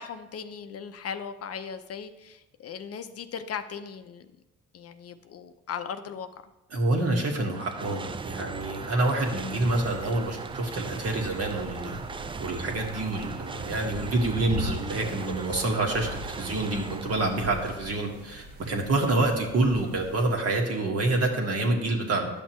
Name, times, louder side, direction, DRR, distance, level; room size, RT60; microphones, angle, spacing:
voice 1, 0.0-4.3 4.7-6.3 19.1-19.3, left 7 dB, 50° left, 9 dB, 0.6 m, -38 dB
voice 2, 6.7-22.4, right 2 dB, 55° right, 1 dB, 1.6 m, -27 dB
sound 1, 7.3-18.1, right 5 dB, 20° right, 0.3 m, -39 dB
sound 2, 9.2-20.4, left 1 dB, 70° right, 2.1 m, -41 dB
10.5 x 6.3 x 3.1 m, 1.0 s
cardioid pair, 90°, 30 cm